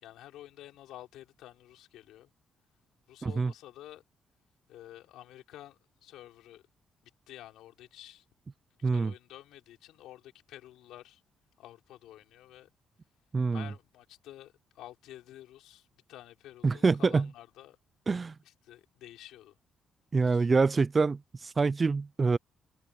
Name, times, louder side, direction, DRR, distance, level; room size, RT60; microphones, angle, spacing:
voice 1, 0.0-2.3 3.1-4.0 4.7-6.6 7.3-8.2 8.8-11.2 11.6-12.7 13.5-17.8 18.4-19.5 20.2-20.5, left 13 dB, 90° left, 5.0 m, -50 dB
voice 2, 13.3-13.6 16.6-17.3 18.1-18.3 20.1-22.4, right 4 dB, 30° right, 0.4 m, -26 dB
cardioid pair, 90°, 0 cm